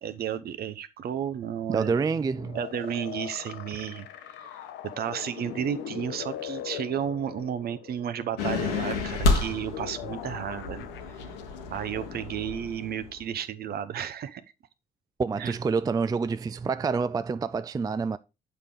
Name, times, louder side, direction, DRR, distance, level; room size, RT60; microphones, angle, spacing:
voice 1, 0.0-2.0 2.5-4.1 4.8-10.8 11.7-14.4 15.4-15.6, right 9 dB, 55° right, 0.7 m, -32 dB
voice 2, 1.7-2.6 15.2-18.2, right 5 dB, 20° right, 0.4 m, -27 dB
sound 1, 2.3-13.1, left 11 dB, 70° left, 0.7 m, -42 dB
sound 2, 8.4-13.2, left 3 dB, 90° left, 1.2 m, -30 dB
8.0 x 5.1 x 3.7 m
hypercardioid pair, 50°, 19 cm